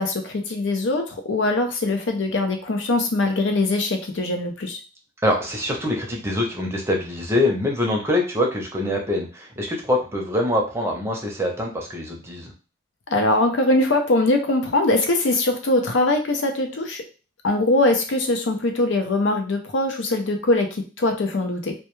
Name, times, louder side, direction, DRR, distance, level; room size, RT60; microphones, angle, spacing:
voice 1, 0.0-4.8 13.1-17.0 17.4-21.7, left 2 dB, 75° left, 4 dB, 0.5 m, -22 dB
voice 2, 5.2-12.5, left 1 dB, 15° right, 0 dB, 0.6 m, -24 dB
2.2 x 2.2 x 3.0 m, 0.33 s
head